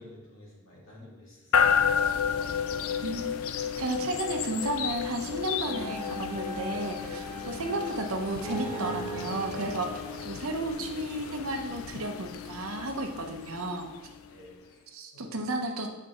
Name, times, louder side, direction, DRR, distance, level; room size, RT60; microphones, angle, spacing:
voice 1, 0.0-1.9 14.3-15.4, left 1 dB, 65° left, -5 dB, 2.1 m, -51 dB
sound 1, 1.5-14.5, left 7 dB, 85° left, 0.4 m, -32 dB
voice 2, 3.0-3.4 3.8-13.9 14.9-15.9, right 2 dB, 85° right, 4 dB, 0.8 m, -33 dB
sound 2, 5.6-11.4, equal, 15° right, 1.4 m, -39 dB
8.5 x 4.5 x 3.0 m, 1.1 s
head